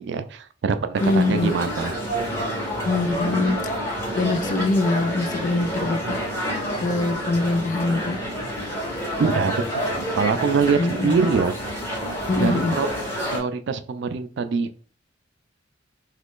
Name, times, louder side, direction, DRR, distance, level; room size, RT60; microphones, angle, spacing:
voice 1, 0.0-1.9 9.2-11.6 12.4-12.9 13.3-14.7, right 5 dB, 60° right, 10 dB, 0.4 m, -24 dB
sound 1, 0.9-13.4, equal, 15° left, 1.0 m, -28 dB
voice 2, 1.0-1.5 2.8-3.8 4.2-6.5 6.8-8.2 10.8-11.2 12.3-12.8, left 3 dB, 40° left, 10 dB, 0.3 m, -23 dB
3.0 x 2.4 x 3.6 m, 0.40 s
head